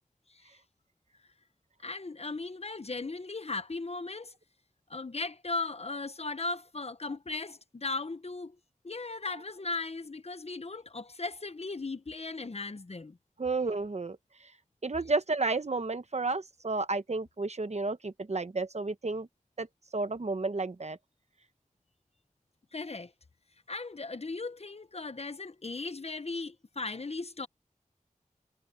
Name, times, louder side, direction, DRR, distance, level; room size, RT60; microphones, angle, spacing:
voice 1, 1.8-4.3 4.9-8.6 8.8-13.2 22.7-23.1 23.7-27.5, left 3 dB, 50° left, 0.9 m, -37 dB
voice 2, 13.4-14.2 14.8-19.3 19.6-19.7 19.9-21.0, right 3 dB, 55° right, 1.1 m, -31 dB
wide cardioid pair, 60°, 14 cm